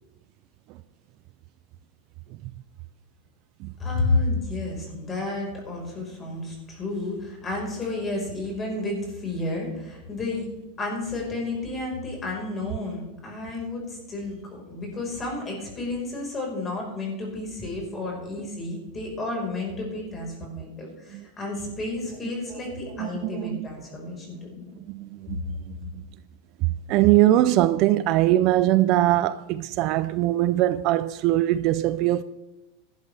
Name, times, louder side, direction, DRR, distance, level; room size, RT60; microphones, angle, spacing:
voice 1, 3.8-10.5 10.8-24.6, left 2 dB, 20° left, 4.7 m, -31 dB
voice 2, 23.0-23.7 24.9-26.0 26.6-32.2, right 14 dB, 45° right, 0.4 m, -22 dB
16.5 x 11.5 x 3.4 m
supercardioid pair, 145°, 0 cm